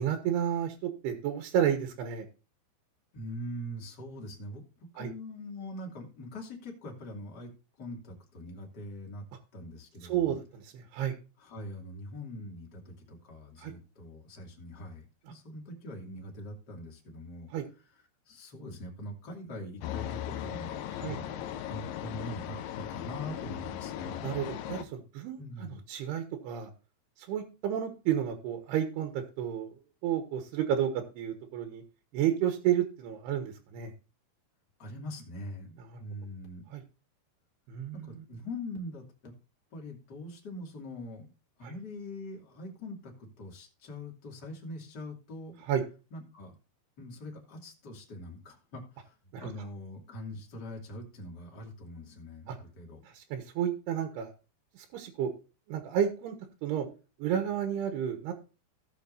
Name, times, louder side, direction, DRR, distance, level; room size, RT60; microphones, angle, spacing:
voice 1, 0.0-2.3 5.0-5.1 10.1-11.1 13.6-13.7 17.5-17.6 21.0-21.2 24.2-26.7 27.3-29.7 30.0-31.8 32.1-33.9 35.8-36.0 36.7-36.8 37.7-38.2 41.6-41.7 45.7-45.8 49.3-49.5 52.5-52.6 53.1-54.3 54.8-55.3 55.7-56.4 56.6-56.9 57.2-58.3, right 9 dB, 75° right, 5 dB, 2.8 m, -31 dB
voice 2, 3.1-7.5 7.8-9.2 9.5-10.4 11.4-17.5 18.3-24.3 25.4-25.8 34.8-36.6 37.9-39.3 39.7-41.3 41.6-45.6 46.1-46.5 47.0-53.0, left 1 dB, 30° left, 0 dB, 2.2 m, -43 dB
sound 1, 19.8-24.8, left 11 dB, 80° left, 2.4 m, -38 dB
17.5 x 6.8 x 2.6 m, 0.33 s
omnidirectional pair, 5.4 m